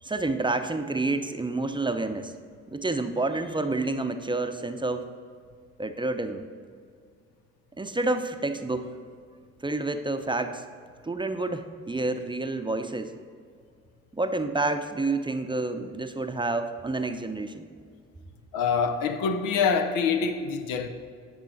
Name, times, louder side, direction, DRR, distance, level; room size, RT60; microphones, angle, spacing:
voice 1, 0.0-2.3 2.7-5.1 5.8-6.4 7.8-8.9 9.6-10.6 11.0-13.1 14.1-17.7, right 2 dB, 15° right, 0.6 m, -29 dB
voice 2, 18.5-20.9, left 5 dB, 80° left, 0.6 m, -25 dB
8.6 x 6.2 x 4.0 m
hypercardioid pair, 45°, 34 cm